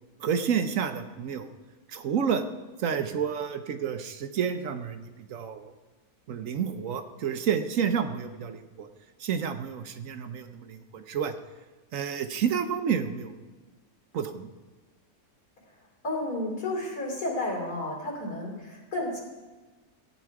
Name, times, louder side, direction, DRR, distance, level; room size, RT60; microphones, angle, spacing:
voice 1, 0.2-1.5 1.9-2.4 2.8-5.7 6.3-8.9 9.2-11.3 11.9-13.3 14.1-14.5, right 7 dB, 65° right, 8 dB, 1.1 m, -30 dB
voice 2, 16.0-19.2, left 1 dB, 85° left, -2 dB, 3.4 m, -32 dB
15.0 x 9.0 x 4.7 m, 1.2 s
omnidirectional pair, 1.6 m